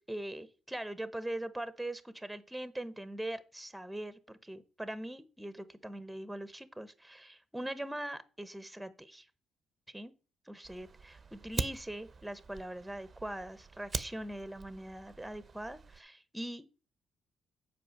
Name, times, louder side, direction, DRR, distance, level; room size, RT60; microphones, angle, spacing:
voice 1, 0.0-9.3 9.9-10.1 10.5-16.6, right 1 dB, 5° right, 13 dB, 0.9 m, -41 dB
Fire, 10.6-16.0, right 4 dB, 35° right, 0.7 m, -43 dB
7.7 x 5.1 x 6.5 m, 0.35 s
cardioid pair, 90°, 0 cm